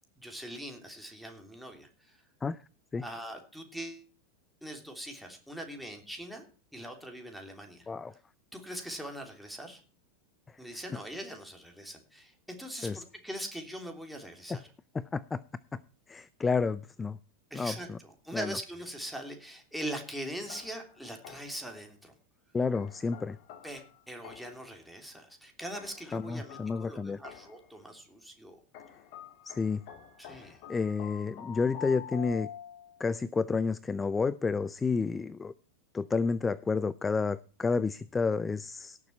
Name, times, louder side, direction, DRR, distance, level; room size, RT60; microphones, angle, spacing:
voice 1, 0.2-2.2 3.0-4.0 4.6-6.4 6.7-7.9 8.5-9.8 10.6-14.7 17.5-22.1 23.6-28.6 30.2-30.6, right 1 dB, ahead, 2 dB, 3.2 m, -42 dB
voice 2, 14.9-15.4 16.1-17.2 17.5-18.0 18.3-18.5 22.5-23.4 26.1-27.2 29.5-29.8 30.7-32.5 33.0-35.5 35.9-39.0, left 4 dB, 15° left, 19 dB, 0.5 m, -30 dB
sound 1, 20.5-21.7 22.7-24.7 25.7-27.7 28.7-33.0, left 9 dB, 55° left, 2.0 m, -47 dB
17.5 x 7.1 x 4.3 m, 0.38 s
hypercardioid pair, 90°, 0 cm